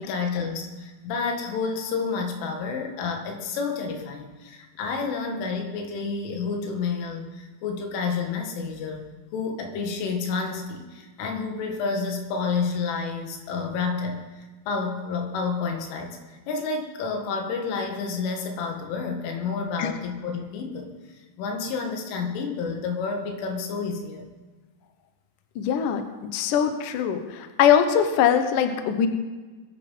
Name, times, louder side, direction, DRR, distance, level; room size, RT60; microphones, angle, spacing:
voice 1, 0.0-16.2 16.5-20.9 21.4-24.2, left 4 dB, 90° left, 3 dB, 4.4 m, -30 dB
voice 2, 25.6-29.1, left 8 dB, 75° left, 7 dB, 2.0 m, -22 dB
23.0 x 8.9 x 5.6 m, 1.3 s
omnidirectional pair, 5.5 m